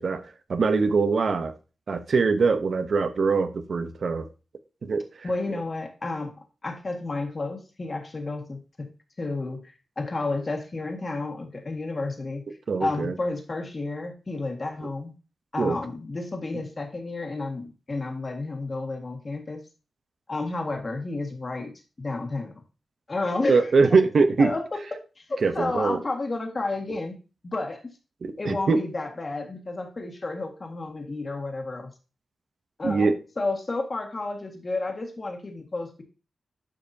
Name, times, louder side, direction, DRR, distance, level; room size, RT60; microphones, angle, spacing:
voice 1, 0.0-1.5 1.9-4.3 4.8-5.3 12.7-13.2 15.6-15.8 23.5-24.5 25.4-26.0 28.2-28.8 32.8-33.2, right 4 dB, 60° right, 10 dB, 0.7 m, -23 dB
voice 2, 5.2-6.3 6.6-8.9 9.2-12.4 12.8-15.1 15.5-19.6 20.3-22.5 23.1-23.7 24.4-27.1 27.4-27.9 28.4-31.9 32.8-36.0, left 2 dB, 35° left, 3 dB, 1.7 m, -31 dB
11.5 x 5.2 x 2.7 m, 0.32 s
wide cardioid pair, 125°, 0 cm